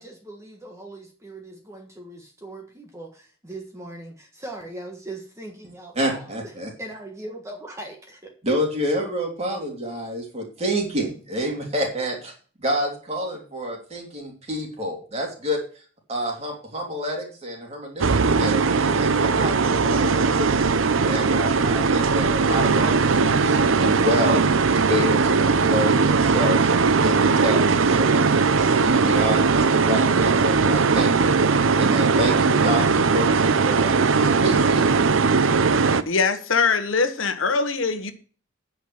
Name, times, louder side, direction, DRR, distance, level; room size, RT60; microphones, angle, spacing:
voice 1, 0.0-6.5 6.8-8.3, right 1 dB, 15° right, 1.5 m, -39 dB
voice 2, 6.0-6.7 8.4-12.3 12.6-15.8 16.1-20.7 21.1-24.4 24.7-26.7 27.0-31.3 31.7-34.8, equal, 35° right, 3.3 m, -28 dB
sound 1, 18.0-36.0, right 4 dB, 80° right, 0.7 m, -19 dB
voice 3, 36.1-38.1, left 5 dB, 80° left, 1.3 m, -22 dB
9.7 x 5.9 x 7.9 m
head